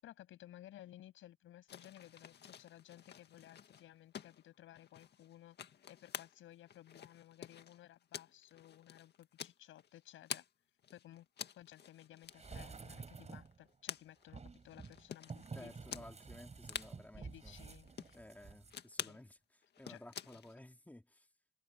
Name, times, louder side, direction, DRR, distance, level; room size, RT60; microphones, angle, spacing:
voice 1, 0.0-5.6 5.9-10.4 10.9-11.3 11.6-16.1 17.2-18.2 19.1-19.2 19.9-20.2, left 13 dB, 80° left, 7.0 m, -57 dB
sound 1, 1.7-10.5 10.8-15.5 15.9-16.1 16.3-16.4 16.6-16.9 17.5-18.2 18.7-19.2 19.6-20.5, left 8 dB, 55° left, 2.0 m, -49 dB
sound 2, 12.3-13.6 14.3-18.8 19.1-19.2, right 4 dB, 35° right, 7.2 m, -51 dB
voice 2, 15.5-17.6 18.1-21.3, left 1 dB, 10° left, 3.8 m, -55 dB
cardioid pair, 90°, 20 cm